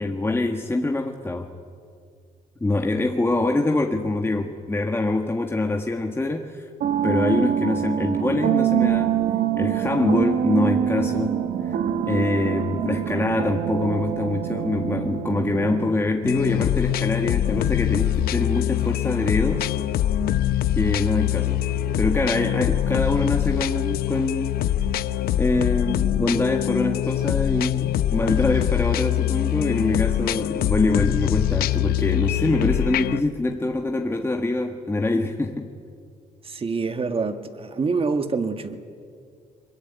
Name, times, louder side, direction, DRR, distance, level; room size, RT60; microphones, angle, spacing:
voice 1, 0.0-1.5 2.6-6.7 7.0-9.2 9.6-11.8 12.0-19.7 20.8-21.6 22.0-24.6 25.4-35.7, left 2 dB, 15° left, 3 dB, 1.6 m, -24 dB
sound 1, 6.8-15.9, right 10 dB, 80° right, 1.7 m, -24 dB
sound 2, 16.2-33.2, left 12 dB, 80° left, 0.7 m, -23 dB
voice 2, 36.4-38.8, right 4 dB, 35° right, 8 dB, 1.9 m, -26 dB
22.5 x 22.0 x 9.3 m, 2.2 s
cardioid pair, 85°, 15 cm